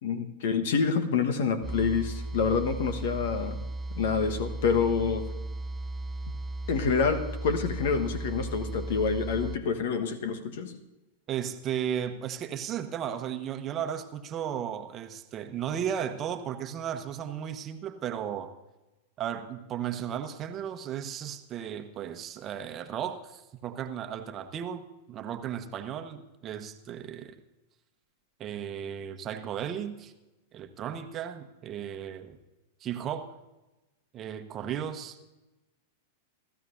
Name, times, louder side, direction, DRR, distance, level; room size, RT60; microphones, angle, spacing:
voice 1, 0.0-3.6 3.9-5.3 6.7-10.7, left 5 dB, 55° left, 9 dB, 1.4 m, -27 dB
sound 1, 1.6-9.6, right 2 dB, 15° right, 0.5 m, -36 dB
voice 2, 11.3-18.5 19.2-27.4 28.4-30.1 30.5-32.4 32.8-33.3 34.1-35.2, right 9 dB, 30° right, 8 dB, 1.1 m, -35 dB
29.5 x 14.0 x 2.7 m, 1.0 s
figure-of-eight pair, 95°, 0 cm